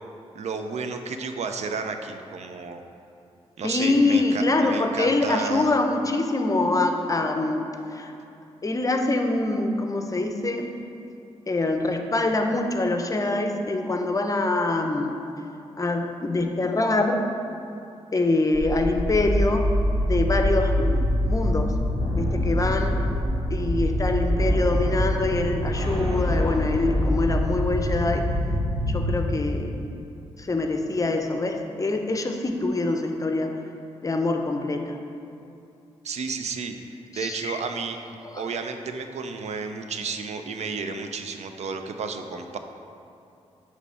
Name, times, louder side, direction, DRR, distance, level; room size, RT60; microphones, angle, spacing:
voice 1, 0.3-2.8 3.6-5.7 36.0-36.7 37.1-38.0 38.4-42.6, right 5 dB, 70° right, 6 dB, 0.5 m, -32 dB
voice 2, 3.6-8.1 8.6-10.7 11.5-15.2 15.8-17.2 18.1-19.7 20.0-21.7 22.1-23.0 23.5-28.3 28.9-29.7 30.4-33.5 34.0-35.0 37.1-37.6 38.2-38.4, left 2 dB, 30° left, 4 dB, 0.6 m, -24 dB
sound 1, 18.5-29.2, equal, 50° right, 1.4 m, -24 dB
8.2 x 3.2 x 5.6 m, 2.7 s
cardioid pair, 80°, 12 cm